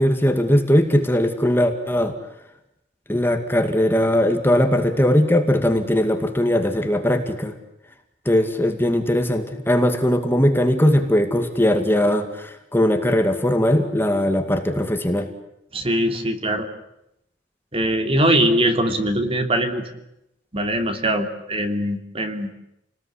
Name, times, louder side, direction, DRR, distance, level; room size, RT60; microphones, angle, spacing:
voice 1, 0.0-2.1 3.1-7.5 8.3-15.3, left 1 dB, 15° left, 6 dB, 2.2 m, -19 dB
voice 2, 15.7-16.7 17.7-19.8 20.5-22.5, right 1 dB, 30° right, 6 dB, 3.0 m, -21 dB
29.5 x 20.0 x 10.0 m, 0.85 s
head